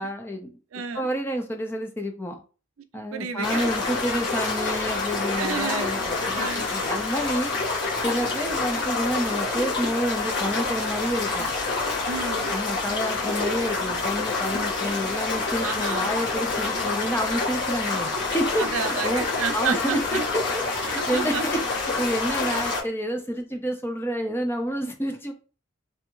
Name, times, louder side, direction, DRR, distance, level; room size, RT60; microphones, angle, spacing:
voice 1, 0.0-0.6 0.9-2.4 2.9-7.5 8.0-11.5 12.5-18.7 19.0-20.2 20.5-25.3, equal, 10° left, 0.6 m, -29 dB
voice 2, 0.7-1.1 3.1-3.7 5.4-5.9 6.3-6.7 12.0-12.5 15.6-16.1 18.6-20.2 20.9-21.4, right 7 dB, 80° right, 0.5 m, -31 dB
sound 1, 3.4-22.8, left 3 dB, 60° left, 1.3 m, -27 dB
3.4 x 2.7 x 3.0 m
head